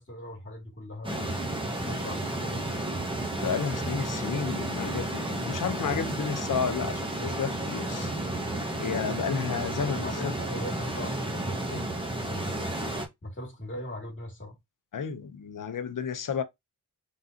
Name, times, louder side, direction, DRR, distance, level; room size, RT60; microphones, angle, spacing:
voice 1, 0.0-2.7 9.8-11.6 12.2-12.5 13.2-14.5, left 1 dB, 30° left, 2.6 m, -40 dB
sound 1, 1.0-13.1, right 1 dB, 10° right, 1.7 m, -32 dB
voice 2, 3.4-8.1 8.5-10.3 11.7-11.8 14.9-16.4, left 6 dB, 50° left, 1.0 m, -32 dB
4.1 x 3.7 x 2.9 m
cardioid pair, 60°, 41 cm